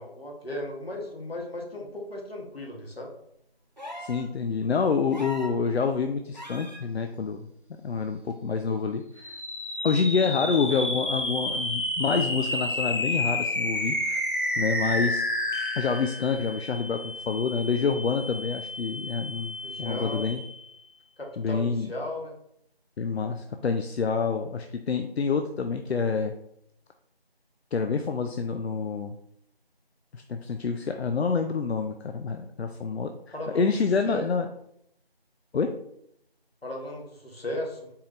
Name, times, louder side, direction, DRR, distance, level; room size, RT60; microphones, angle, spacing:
voice 1, 0.0-3.1 10.4-10.5 19.6-20.3 21.2-22.3 33.3-33.7 34.0-34.3 36.6-37.9, left 1 dB, 70° left, -1 dB, 1.3 m, -36 dB
sound 1, 3.8-4.3 5.1-5.6 6.3-6.8 8.3-8.4, equal, 45° right, 0.6 m, -39 dB
voice 2, 4.0-7.5 7.8-9.3 9.8-14.2 14.6-15.2 15.8-20.4 21.4-21.9 23.0-26.3 27.7-29.1 30.1-33.1 33.5-34.5 35.5-35.8, left 5 dB, 85° left, 6 dB, 0.5 m, -27 dB
sound 2, 9.2-20.7, left 1 dB, 55° left, 0.8 m, -31 dB
4.5 x 3.3 x 2.6 m, 0.75 s
figure-of-eight pair, 180°, 31 cm